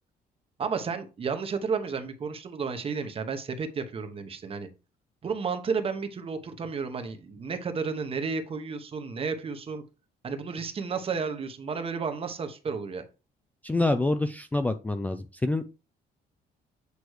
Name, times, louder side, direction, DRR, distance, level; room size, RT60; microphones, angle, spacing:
voice 1, 0.6-4.7 5.2-9.8 10.2-13.0, right 5 dB, 35° right, 1.1 m, -32 dB
voice 2, 13.6-15.6, left 2 dB, 10° left, 0.4 m, -26 dB
8.2 x 3.1 x 4.7 m
cardioid pair, 125°, 17 cm